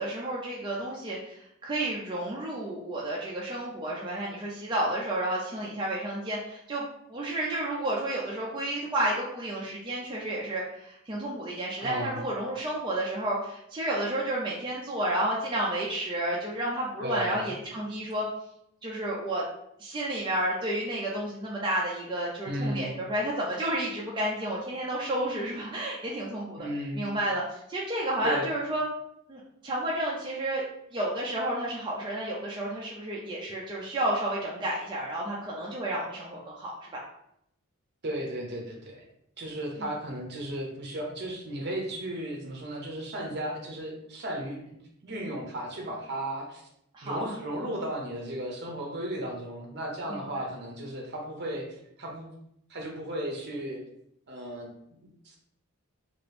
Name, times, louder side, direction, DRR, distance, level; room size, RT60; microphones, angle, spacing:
voice 1, 0.0-18.3 18.8-19.4 19.8-26.6 26.9-28.8 29.3-30.6 30.9-37.0 46.9-47.2 50.1-50.2, right 1 dB, 20° right, -5 dB, 0.4 m, -31 dB
voice 2, 11.8-12.2 17.0-17.5 22.4-23.0 26.6-27.1 28.2-28.5 38.0-39.0 39.4-44.8 45.0-46.6 47.0-52.3 52.7-53.8 54.3-55.4, right 1 dB, 50° right, 0 dB, 0.7 m, -35 dB
2.9 x 2.5 x 3.2 m, 0.76 s
head